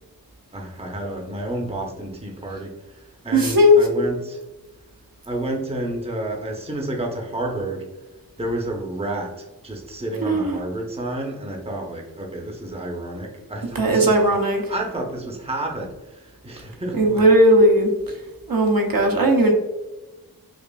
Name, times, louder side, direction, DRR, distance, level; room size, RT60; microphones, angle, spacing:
voice 1, 0.5-4.4 5.3-7.9 8.4-17.2, right 1 dB, 15° right, 1 dB, 0.7 m, -30 dB
voice 2, 3.3-3.8 10.3-10.6 13.7-14.6 16.9-18.2 18.5-19.5, equal, 70° right, 1 dB, 0.8 m, -17 dB
5.0 x 2.4 x 2.3 m, 1.0 s
wide cardioid pair, 50°, 36 cm